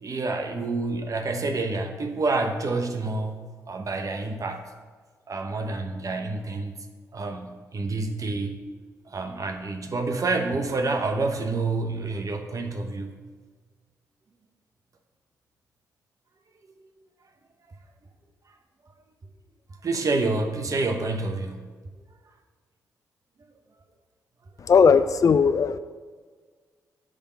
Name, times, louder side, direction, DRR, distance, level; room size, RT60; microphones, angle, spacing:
voice 1, 0.0-3.4 3.7-4.6 5.3-6.7 7.1-8.5 9.1-13.2 19.8-21.7, right 3 dB, 50° right, 6 dB, 1.1 m, -28 dB
voice 2, 24.6-25.8, left 6 dB, 50° left, 12 dB, 0.5 m, -18 dB
8.6 x 3.8 x 6.9 m, 1.5 s
hypercardioid pair, 45°, 7 cm